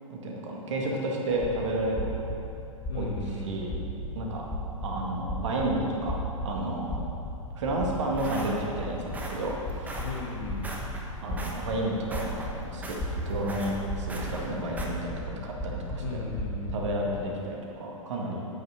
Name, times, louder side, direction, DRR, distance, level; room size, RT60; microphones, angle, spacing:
voice 1, 0.1-2.2 2.9-3.1 3.4-3.8 4.2-4.4 4.8-6.2 6.4-7.0 7.6-9.9 11.2-12.4 12.6-16.2 16.7-18.5, right 1 dB, 60° right, -1 dB, 1.9 m, -31 dB
sound 1, 1.3-17.2, equal, 20° left, 1.6 m, -36 dB
voice 2, 2.9-3.6 10.0-10.7 16.0-16.8, left 3 dB, 50° left, -1 dB, 1.7 m, -36 dB
sound 2, 7.7-14.9, right 1 dB, 10° right, 1.1 m, -40 dB
8.9 x 8.6 x 5.0 m, 2.8 s
figure-of-eight pair, 105°, 18 cm